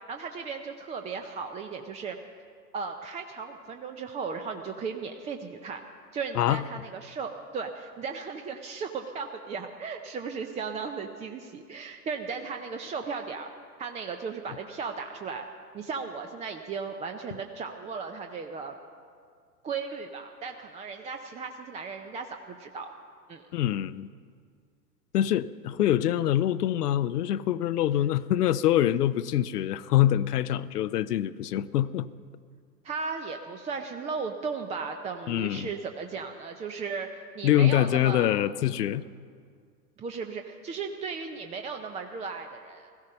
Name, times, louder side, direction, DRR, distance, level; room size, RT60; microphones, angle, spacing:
voice 1, 0.1-2.2 2.7-5.8 6.1-13.5 13.8-15.5 15.7-18.7 19.6-22.9 23.3-23.4 32.8-38.3 40.0-42.9, right 5 dB, 15° right, 5 dB, 0.5 m, -36 dB
voice 2, 23.5-24.1 25.1-32.1 35.3-35.7 37.4-39.0, left 12 dB, 70° left, 16 dB, 0.7 m, -25 dB
17.0 x 14.5 x 5.5 m, 2.1 s
hypercardioid pair, 100°, 49 cm